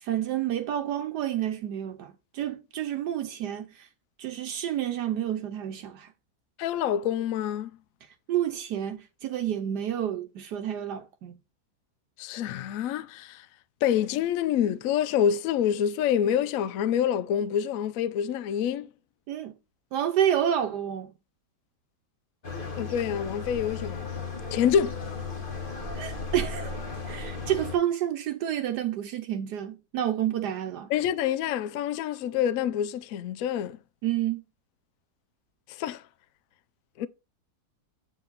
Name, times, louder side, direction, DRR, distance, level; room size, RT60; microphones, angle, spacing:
voice 1, 0.0-3.9 4.2-6.1 8.3-11.3 19.3-19.5 19.9-21.1 26.0-26.8 27.1-30.9 34.0-34.4, right 10 dB, 80° right, 1.3 m, -29 dB
voice 2, 6.6-7.7 12.2-13.5 13.8-18.9 22.8-24.1 24.5-25.0 30.9-33.8 35.7-36.0 37.0-37.1, left 9 dB, 70° left, 0.8 m, -27 dB
sound 1, 22.4-27.8, left 4 dB, 35° left, 1.4 m, -35 dB
8.2 x 4.6 x 3.9 m
omnidirectional pair, 1.8 m